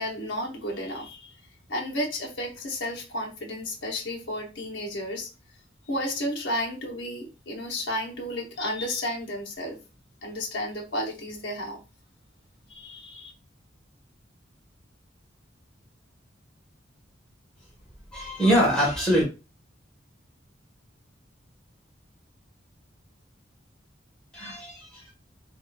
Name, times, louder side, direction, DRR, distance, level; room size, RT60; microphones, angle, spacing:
voice 1, 0.0-1.3 1.7-5.3 5.9-9.8 10.2-11.8 12.7-13.3, left 1 dB, 75° left, -1 dB, 0.8 m, -32 dB
voice 2, 18.1-19.2 24.3-25.1, equal, 5° left, -5 dB, 1.2 m, -23 dB
2.7 x 2.4 x 2.2 m, 0.30 s
head